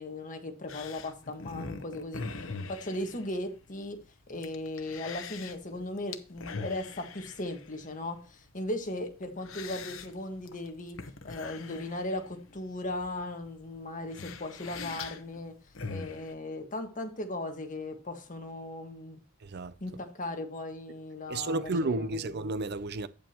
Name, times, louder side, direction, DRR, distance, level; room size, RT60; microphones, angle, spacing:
voice 1, 0.0-4.0 4.3-11.0 11.2-15.5 15.9-19.2 19.8-22.2, left 1 dB, 40° left, 1.6 m, -37 dB
sound 1, 0.7-16.3, left 4 dB, 70° left, 1.0 m, -44 dB
voice 2, 19.4-19.7 21.3-23.1, right 2 dB, 55° right, 0.5 m, -32 dB
9.0 x 8.5 x 3.0 m
head